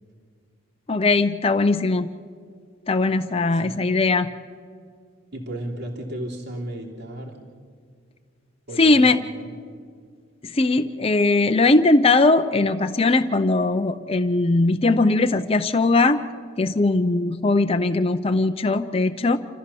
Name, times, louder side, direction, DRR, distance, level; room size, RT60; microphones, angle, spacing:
voice 1, 0.9-2.1 2.9-4.3 8.8-9.2 10.4-16.2 16.6-19.4, left 2 dB, 25° left, 7 dB, 0.6 m, -19 dB
voice 2, 5.3-7.4 8.7-9.6, right 1 dB, 50° right, -2 dB, 3.0 m, -34 dB
28.0 x 14.0 x 7.0 m, 2.1 s
head